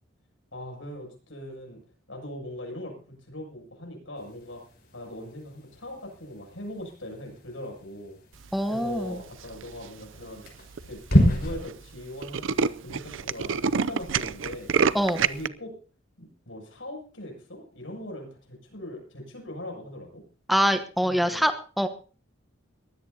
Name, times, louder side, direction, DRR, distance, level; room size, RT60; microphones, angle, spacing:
voice 1, 0.5-1.8 2.1-4.6 4.9-8.2 8.7-10.4 10.8-14.7 15.2-15.7 16.2-20.2 21.0-21.5, left 1 dB, 85° left, 2 dB, 7.6 m, -40 dB
sound 1, 4.2-11.6, equal, 55° left, 5.5 m, -30 dB
voice 2, 8.5-9.2 14.9-15.2 20.5-21.9, equal, ahead, 7 dB, 1.1 m, -24 dB
Tools, 9.4-9.8 10.4-10.5 10.8-10.9 11.1-11.3 11.6-11.7 12.0-15.5, right 6 dB, 80° right, 0.6 m, -26 dB
21.5 x 16.0 x 2.8 m, 0.38 s
head